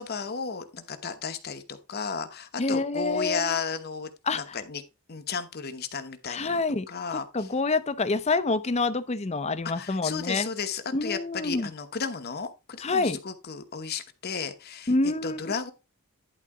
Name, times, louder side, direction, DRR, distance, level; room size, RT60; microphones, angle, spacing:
voice 1, 0.0-4.8 5.1-6.6 6.9-7.5 9.7-15.7, left 5 dB, 45° left, 1.0 m, -34 dB
voice 2, 2.6-3.6 4.3-4.6 6.3-6.9 7.3-10.5 10.9-11.7 12.8-13.2 14.9-15.7, left 3 dB, 30° left, 0.6 m, -27 dB
11.0 x 4.0 x 4.8 m
head